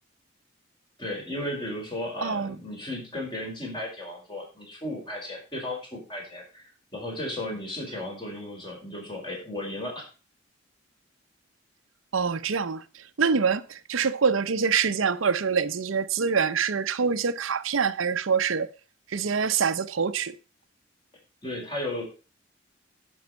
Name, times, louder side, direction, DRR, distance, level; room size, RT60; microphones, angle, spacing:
voice 1, 1.0-6.6 6.9-10.1 21.4-22.0, left 1 dB, 25° left, 4.7 m, -35 dB
voice 2, 2.2-2.6 12.1-12.8 13.2-18.7 19.1-20.4, right 6 dB, 85° right, 0.7 m, -25 dB
10.5 x 6.2 x 5.4 m
head